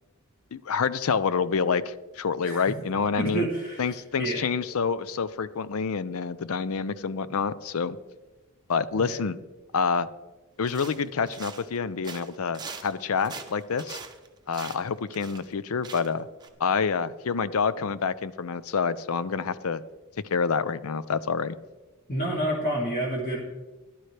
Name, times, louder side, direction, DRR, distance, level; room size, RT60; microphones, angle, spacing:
voice 1, 0.5-3.5 3.8-8.0 8.7-9.4 9.7-10.1 10.6-14.0 14.5-16.3 16.6-19.8 20.3-21.5, left 5 dB, 70° left, 16 dB, 0.5 m, -27 dB
voice 2, 2.4-2.8 3.2-4.5 9.0-9.2 22.1-23.4, right 1 dB, 40° left, -5 dB, 2.4 m, -29 dB
sound 1, 10.6-11.8 12.0-15.5 15.8-16.1 16.4-16.5, right 5 dB, 20° right, 0.9 m, -42 dB
14.5 x 11.5 x 3.3 m, 1.2 s
head